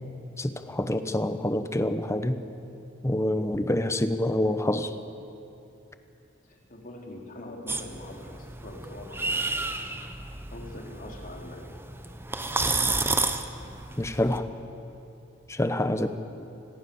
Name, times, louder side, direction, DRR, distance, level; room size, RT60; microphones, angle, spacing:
voice 1, 0.4-2.4 3.0-4.9 14.0-14.5 15.5-16.1, left 1 dB, 15° left, 10 dB, 1.1 m, -26 dB
voice 2, 6.4-9.4 10.5-11.7 13.5-13.6, left 1 dB, 45° left, 0 dB, 3.8 m, -43 dB
sound 1, 7.7-14.4, right 3 dB, 10° right, 1.1 m, -31 dB
29.5 x 21.5 x 7.1 m, 2.8 s
head